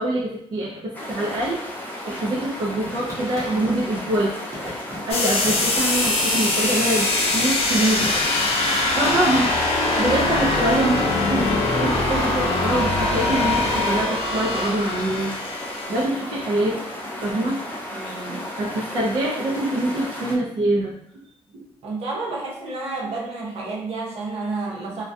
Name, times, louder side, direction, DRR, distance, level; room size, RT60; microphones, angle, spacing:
voice 1, 0.0-1.6 2.0-4.4 5.1-8.1 8.9-9.5 10.0-16.8 17.1-17.6 18.3-20.9, right 1 dB, 50° right, -6 dB, 0.4 m, -24 dB
sound 1, 0.9-20.4, left 1 dB, 15° left, 0.4 m, -34 dB
sound 2, 2.1-4.2 4.5-6.7 7.0-8.3, equal, 25° right, 0.8 m, -37 dB
sound 3, 5.1-16.0, left 2 dB, 65° left, 0.6 m, -22 dB
voice 2, 17.9-18.4 21.8-25.0, right 3 dB, 75° right, -4 dB, 0.7 m, -30 dB
2.2 x 2.2 x 2.6 m, 0.71 s
wide cardioid pair, 165°, 11 cm